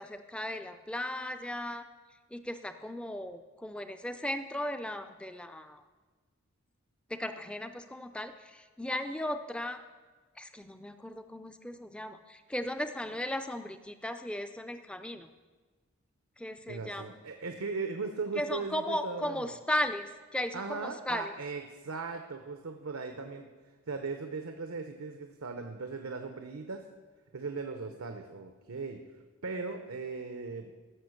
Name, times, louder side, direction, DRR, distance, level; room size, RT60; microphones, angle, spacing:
voice 1, 0.0-1.8 2.3-5.8 7.1-9.8 10.4-15.3 16.4-17.1 18.4-21.3, left 1 dB, 5° left, 9 dB, 0.4 m, -36 dB
voice 2, 16.7-19.5 20.5-23.5 23.9-26.8 27.3-29.0 29.4-30.7, right 4 dB, 80° right, 6 dB, 0.8 m, -38 dB
15.5 x 6.4 x 6.5 m, 1.4 s
head